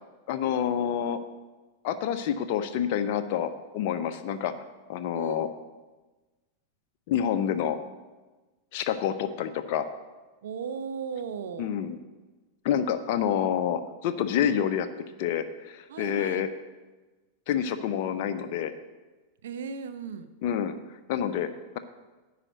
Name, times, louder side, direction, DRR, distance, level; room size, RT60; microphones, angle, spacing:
voice 1, 0.3-1.2 1.8-4.5 4.9-5.5 7.1-7.8 8.7-9.9 11.6-12.0 12.6-14.9 15.2-16.5 17.5-18.7 20.4-20.7 21.1-21.5, left 9 dB, 45° left, 9 dB, 0.7 m, -28 dB
voice 2, 5.1-5.7 10.4-11.8 15.9-16.4 19.4-20.3, right 6 dB, 60° right, 10 dB, 0.7 m, -36 dB
9.9 x 5.0 x 7.8 m, 1.2 s
figure-of-eight pair, 90°, 0 cm